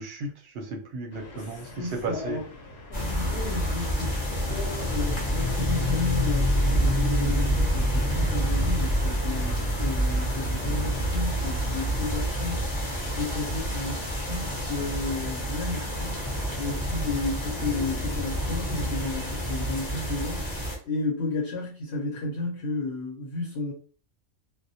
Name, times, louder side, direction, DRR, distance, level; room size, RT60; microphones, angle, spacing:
voice 1, 0.0-1.7 2.0-2.4, right 3 dB, 60° right, 0.7 m, -34 dB
sound 1, 1.1-11.4, left 1 dB, 85° left, 1.1 m, -44 dB
voice 2, 1.3-2.5 2.9-23.7, left 3 dB, 60° left, 0.8 m, -33 dB
sound 2, 2.9-20.8, equal, 30° left, 0.6 m, -27 dB
2.2 x 2.1 x 2.6 m
omnidirectional pair, 1.3 m